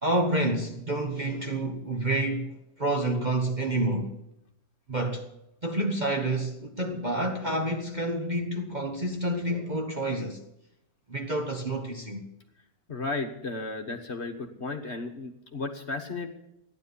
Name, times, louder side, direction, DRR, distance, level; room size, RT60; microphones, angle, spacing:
voice 1, 0.0-4.1 4.9-5.2 5.6-10.4 11.1-12.2, right 1 dB, 30° right, 1.2 m, -29 dB
voice 2, 12.9-16.3, left 3 dB, 40° left, 1.5 m, -34 dB
15.0 x 11.0 x 7.0 m
omnidirectional pair, 1.8 m